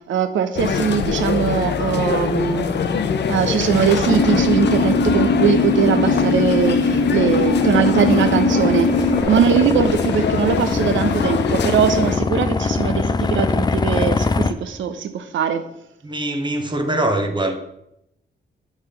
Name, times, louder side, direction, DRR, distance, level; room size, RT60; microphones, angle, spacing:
voice 1, 0.1-2.7 3.3-15.6, right 7 dB, 85° right, 9 dB, 0.7 m, -21 dB
sound 1, 0.6-12.2, left 7 dB, 65° left, 0.6 m, -25 dB
sound 2, 0.6-14.5, left 4 dB, 20° left, 0.4 m, -24 dB
sound 3, 4.1-9.2, left 3 dB, 40° left, 1.1 m, -20 dB
voice 2, 16.0-17.6, right 1 dB, 25° right, 6 dB, 0.8 m, -22 dB
8.1 x 3.4 x 5.6 m, 0.81 s
cardioid pair, 110°, 19 cm